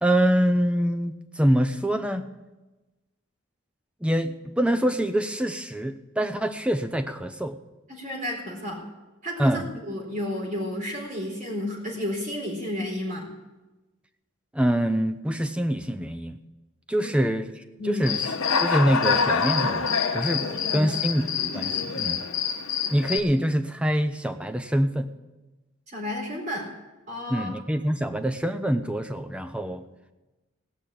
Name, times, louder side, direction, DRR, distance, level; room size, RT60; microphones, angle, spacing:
voice 1, 0.0-2.3 4.0-7.6 9.4-9.7 14.5-16.4 16.9-18.3 18.6-20.4 20.7-22.2 22.9-25.1 27.3-29.8, equal, 5° right, 9 dB, 0.6 m, -25 dB
voice 2, 7.9-8.8 9.2-13.3 17.0-17.1 17.8-18.1 20.4-20.9 25.9-26.7 27.1-27.6, left 1 dB, 35° right, -1 dB, 4.3 m, -32 dB
Human voice / Cricket, 18.0-23.2, left 5 dB, 80° left, 1.2 m, -26 dB
18.0 x 6.3 x 8.7 m, 1.1 s
head